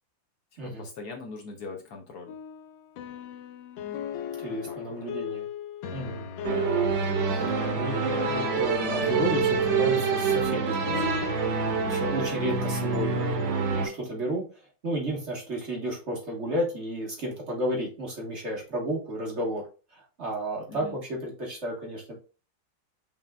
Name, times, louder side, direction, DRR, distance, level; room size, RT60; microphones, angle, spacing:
voice 1, 0.6-2.3 4.5-5.0 20.7-21.0, left 3 dB, 65° left, 3 dB, 1.2 m, -42 dB
sound 1, 2.3-12.3, left 8 dB, 85° left, 1.3 m, -37 dB
voice 2, 4.4-5.4 5.9-6.2 7.7-11.1 11.8-14.4 14.8-19.6 19.9-22.1, right 1 dB, 40° right, -2 dB, 1.4 m, -32 dB
sound 2, 6.4-13.9, right 5 dB, 80° right, 1.5 m, -26 dB
5.8 x 3.6 x 2.2 m, 0.35 s
omnidirectional pair, 2.0 m